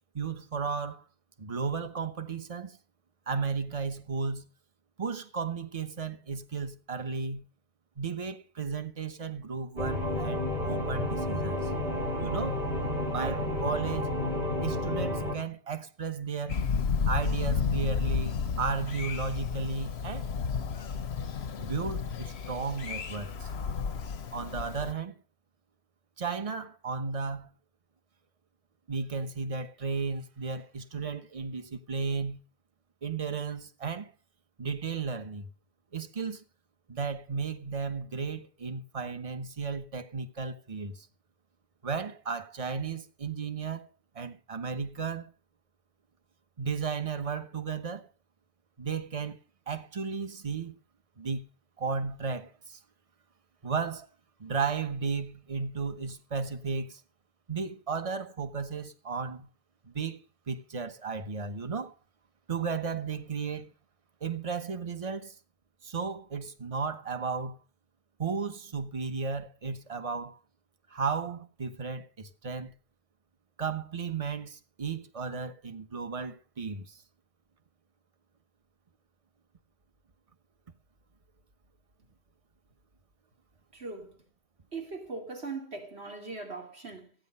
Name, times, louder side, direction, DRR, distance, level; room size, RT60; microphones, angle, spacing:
voice 1, 0.1-1.1 1.4-2.8 3.3-4.5 5.0-7.4 8.0-11.7 12.2-12.7 13.1-14.1 14.6-16.6 17.1-20.3 21.6-23.5 24.3-25.2 26.2-27.5 28.9-32.4 33.0-34.1 34.6-35.5 35.9-36.4 36.9-41.1 41.8-43.9 44.1-45.3 46.6-48.1 48.8-49.4 49.7-50.8 51.2-51.5 51.8-52.8 53.6-54.1 54.4-57.0 57.5-59.5 59.8-61.9 62.5-63.7 64.2-65.4 65.8-67.6 68.2-70.4 70.9-72.7 73.6-77.0, right 5 dB, 35° right, 1.2 m, -34 dB
sound 1, 9.8-15.4, left 1 dB, 70° right, 3.6 m, -31 dB
Thunder, 16.5-24.9, left 6 dB, 90° left, 1.1 m, -32 dB
voice 2, 83.7-84.3 84.7-87.1, right 3 dB, 85° right, 2.9 m, -40 dB
16.0 x 9.5 x 5.5 m
omnidirectional pair, 1.1 m